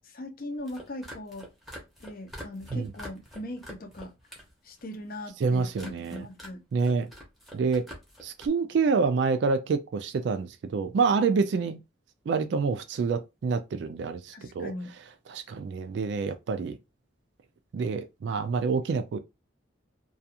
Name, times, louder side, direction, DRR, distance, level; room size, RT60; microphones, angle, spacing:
voice 1, 0.0-1.5 2.0-4.1 4.6-6.6 14.3-14.9, left 1 dB, 45° left, 0.5 m, -39 dB
sound 1, 0.5-4.5 4.8-5.3 5.7-6.5 6.8-8.5, equal, ahead, 0.7 m, -45 dB
voice 2, 5.4-6.3 6.7-7.1 7.5-7.9 8.2-11.8 12.3-14.7 15.3-16.8 17.7-19.2, right 4 dB, 65° right, 0.3 m, -27 dB
2.4 x 2.3 x 2.7 m
head